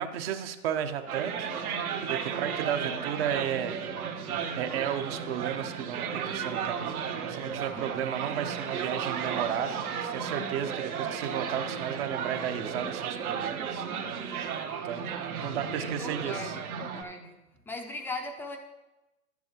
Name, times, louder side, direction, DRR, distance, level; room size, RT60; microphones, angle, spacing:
voice 1, 0.0-1.5 2.1-3.8 4.6-13.8 14.8-16.6, right 9 dB, 40° right, 7 dB, 0.9 m, -33 dB
sound 1, 1.1-17.0, right 7 dB, 70° right, 1.4 m, -34 dB
voice 2, 7.5-7.9 14.4-14.6 15.8-17.3 17.7-18.6, left 2 dB, 5° left, 2 dB, 0.5 m, -39 dB
11.5 x 9.4 x 3.0 m, 1.0 s
hypercardioid pair, 120°, 45 cm